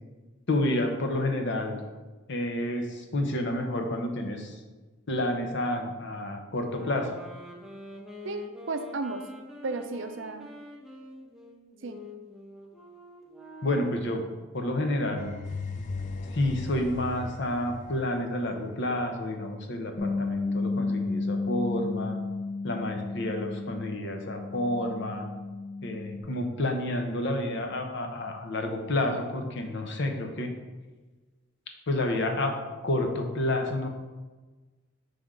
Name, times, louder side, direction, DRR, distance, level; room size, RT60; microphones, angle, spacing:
voice 1, 0.5-1.8 2.3-4.6 5.1-7.1 13.6-14.2 14.5-15.3 16.3-22.2 22.6-25.3 25.8-30.5 31.9-32.6 32.8-33.9, left 1 dB, 55° left, 4 dB, 0.8 m, -29 dB
sound 1, 6.6-14.2, left 1 dB, ahead, 0.6 m, -46 dB
voice 2, 8.2-9.2 9.6-10.5 11.8-12.0, right 3 dB, 60° right, 7 dB, 0.5 m, -34 dB
sound 2, 15.2-19.1, left 4 dB, 35° left, 0.4 m, -38 dB
Bass guitar, 20.0-26.2, left 3 dB, 80° left, 1.2 m, -32 dB
7.5 x 3.5 x 3.7 m, 1.2 s
head